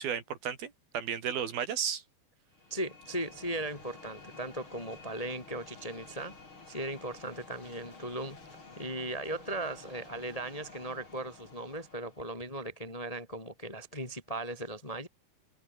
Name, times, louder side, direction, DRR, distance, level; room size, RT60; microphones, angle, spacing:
voice 1, 0.0-2.0, right 8 dB, 75° right, 4.7 m, -34 dB
sound 1, 2.5-12.4, left 3 dB, 35° left, 5.4 m, -52 dB
voice 2, 2.7-6.4 6.7-8.4 8.8-15.1, right 1 dB, 15° left, 1.7 m, -38 dB
omnidirectional pair, 4.3 m